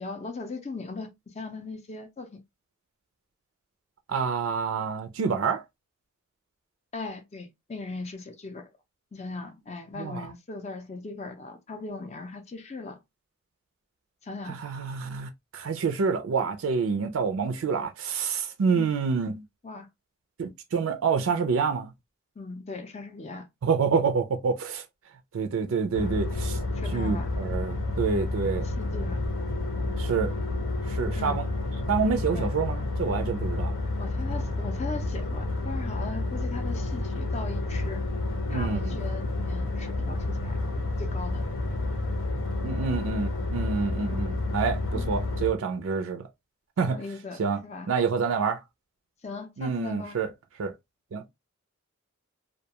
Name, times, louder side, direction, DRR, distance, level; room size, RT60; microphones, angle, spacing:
voice 1, 0.0-2.4 6.9-8.7 9.1-13.0 14.2-14.6 18.7-18.9 19.6-19.9 22.4-23.5 26.7-27.3 28.6-29.2 31.2-31.4 32.3-32.5 34.0-38.0 38.5-41.4 44.0-44.2 44.9-45.1 46.8-47.9 49.2-50.2, left 3 dB, 30° left, 0.4 m, -39 dB
voice 2, 4.1-5.6 10.0-10.3 14.5-19.4 20.4-21.9 23.6-24.8 25.3-26.6 26.9-28.7 30.0-30.3 30.9-31.5 31.9-33.7 38.5-39.0 42.6-46.2 46.8-47.0 47.4-47.6 47.9-48.6 49.6-50.3 50.6-50.7 51.1-51.2, right 5 dB, 70° right, 0.4 m, -27 dB
sound 1, 25.9-45.5, left 2 dB, 80° left, 0.8 m, -30 dB
2.3 x 2.2 x 2.8 m
head